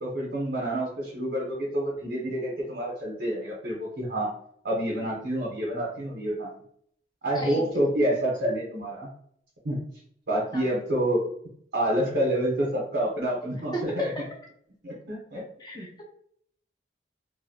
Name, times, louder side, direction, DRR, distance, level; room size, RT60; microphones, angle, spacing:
voice 1, 0.0-4.3 4.6-6.5 7.2-9.1 9.6-9.8 10.3-11.2 11.7-14.1 14.8-15.4 15.7-15.9, right 1 dB, 70° right, -4 dB, 0.7 m, -28 dB
voice 2, 7.3-7.7 10.5-10.7 13.7-14.2 15.6-16.0, equal, 25° left, -1 dB, 0.6 m, -34 dB
2.6 x 2.1 x 2.6 m, 0.66 s
head